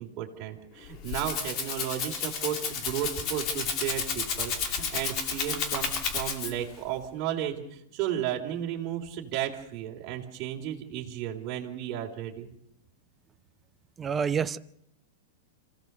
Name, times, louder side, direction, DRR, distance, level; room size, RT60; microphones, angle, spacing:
voice 1, 0.0-12.5, right 11 dB, 35° right, -1 dB, 3.5 m, -34 dB
Rattle (instrument), 0.8-6.7, left 6 dB, 35° left, 2.4 m, -32 dB
voice 2, 14.0-14.6, right 7 dB, 15° right, 13 dB, 0.7 m, -27 dB
26.5 x 16.0 x 6.9 m, 0.76 s
hypercardioid pair, 140°, 0 cm